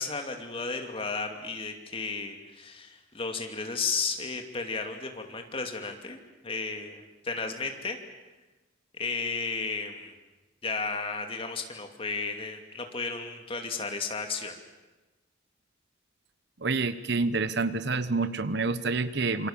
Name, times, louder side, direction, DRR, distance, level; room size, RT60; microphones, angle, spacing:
voice 1, 0.0-8.0 8.9-10.1 10.6-14.6, left 4 dB, 30° left, 4 dB, 2.5 m, -34 dB
voice 2, 16.6-19.5, right 3 dB, 60° right, 14 dB, 1.1 m, -28 dB
27.5 x 24.5 x 7.4 m, 1.1 s
head